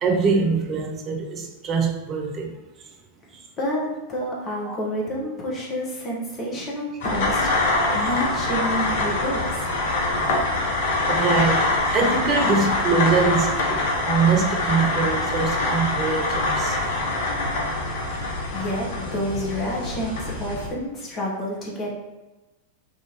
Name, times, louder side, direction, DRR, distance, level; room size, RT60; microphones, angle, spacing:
voice 1, 0.0-2.5 4.7-4.8 11.1-11.7 11.9-16.8, right 4 dB, 30° right, 2 dB, 0.5 m, -23 dB
voice 2, 3.6-7.5 7.9-9.7 18.5-21.9, equal, 25° left, -3 dB, 1.0 m, -29 dB
sound 1, 7.0-20.7, left 2 dB, 55° left, 0.7 m, -24 dB
3.4 x 2.5 x 2.9 m, 1.1 s
figure-of-eight pair, 90°, 0 cm